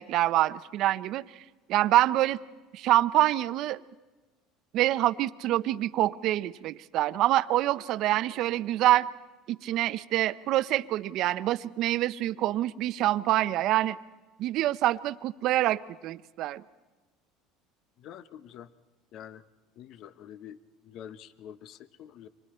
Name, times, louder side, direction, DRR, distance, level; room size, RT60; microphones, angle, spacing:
voice 1, 0.0-1.4 1.7-2.4 2.7-3.8 4.7-9.1 9.5-14.0 14.4-16.6, right 14 dB, 60° right, 15 dB, 0.7 m, -26 dB
voice 2, 18.0-18.7 19.1-19.4 19.8-20.6 20.8-22.3, left 10 dB, 55° left, 13 dB, 0.9 m, -46 dB
30.0 x 25.0 x 4.4 m, 1.2 s
supercardioid pair, 110°, 0 cm